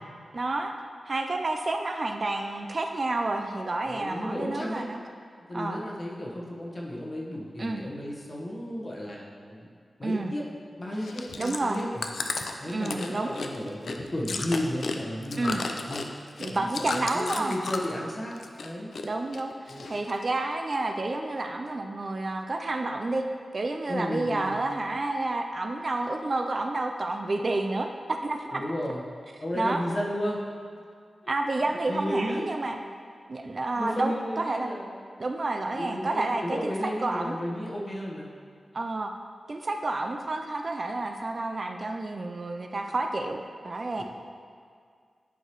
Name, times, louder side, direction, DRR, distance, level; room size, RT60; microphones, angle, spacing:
voice 1, 0.3-0.7 1.1-5.0 5.5-5.8 7.6-7.8 10.0-10.3 11.3-11.8 12.7-13.3 15.4-15.6 16.4-17.6 19.0-23.3 23.5-28.6 29.5-29.8 31.3-32.8 33.3-34.7 35.2-37.3 38.7-39.1 39.5-44.0, right 2 dB, 40° right, 4 dB, 0.4 m, -30 dB
voice 2, 3.8-4.8 5.5-9.2 9.5-9.7 10.0-10.5 10.8-12.0 12.6-16.0 16.5-18.9 19.7-19.8 23.9-24.6 28.5-29.0 29.4-30.4 31.9-32.5 33.8-34.9 35.7-38.3 44.0-44.1, equal, 35° left, -3 dB, 1.1 m, -33 dB
Chewing mastication, 10.9-18.0 18.3-19.1 19.3-20.2 20.7-20.8, left 3 dB, 75° left, 0.4 m, -34 dB
10.5 x 4.7 x 3.0 m, 2.1 s
wide cardioid pair, 130°, 0 cm